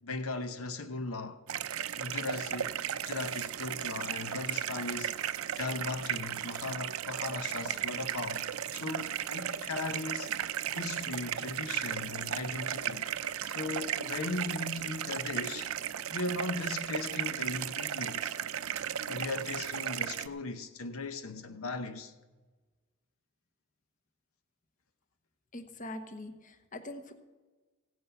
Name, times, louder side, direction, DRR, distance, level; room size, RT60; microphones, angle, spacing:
voice 1, 0.0-1.4 2.0-5.1 5.6-10.3 10.7-13.1 13.5-15.7 16.1-18.3 19.1-22.1, left 3 dB, 90° left, 0.9 m, -38 dB
sound 1, 1.5-20.3, right 9 dB, 90° right, 0.5 m, -35 dB
voice 2, 25.5-27.1, left 1 dB, 40° left, 1.0 m, -43 dB
16.0 x 9.4 x 5.8 m
head